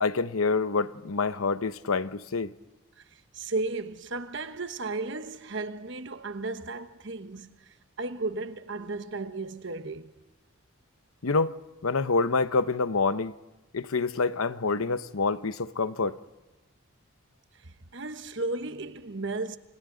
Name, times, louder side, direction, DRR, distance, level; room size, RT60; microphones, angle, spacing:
voice 1, 0.0-2.5 11.2-11.5 11.8-13.3 13.7-16.2, left 4 dB, 75° left, 0.8 m, -27 dB
voice 2, 3.3-7.5 8.0-10.1 17.6-19.6, right 3 dB, 55° right, 1.1 m, -34 dB
29.0 x 27.0 x 3.9 m
head